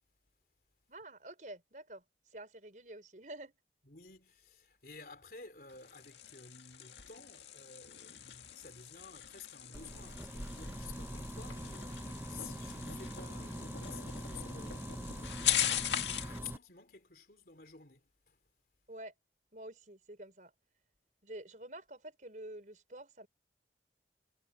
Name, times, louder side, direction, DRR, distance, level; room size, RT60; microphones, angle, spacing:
voice 1, 0.9-3.5 18.9-19.1 19.5-20.5 21.2-23.3, right 1 dB, 45° right, 4.9 m, -48 dB
voice 2, 3.9-18.4, left 5 dB, 55° left, 3.6 m, -53 dB
sound 1, 5.7-16.4, left 11 dB, 85° left, 1.9 m, -40 dB
sound 2, 9.7-16.6, right 1 dB, 15° right, 0.9 m, -43 dB
head